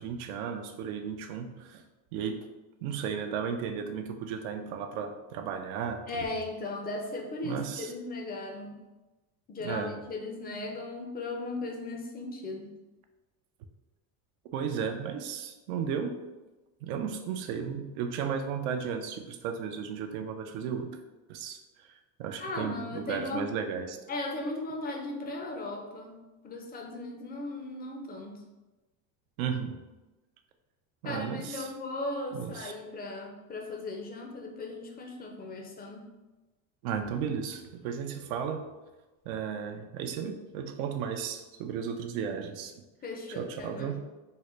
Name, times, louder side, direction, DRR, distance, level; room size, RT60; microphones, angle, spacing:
voice 1, 0.0-1.8 2.1-2.4 2.8-6.0 7.4-7.9 9.6-10.0 14.5-16.1 16.8-21.0 21.3-24.0 29.4-29.8 31.0-31.7 32.3-32.7 36.8-38.6 39.3-42.7 43.4-44.0, right 7 dB, 85° right, 5 dB, 0.5 m, -34 dB
voice 2, 6.1-8.8 9.5-12.7 22.4-23.5 24.1-28.4 31.0-36.1 43.0-44.0, left 2 dB, 25° left, 2 dB, 0.4 m, -37 dB
3.8 x 2.1 x 3.0 m, 1.1 s
supercardioid pair, 120°, 41 cm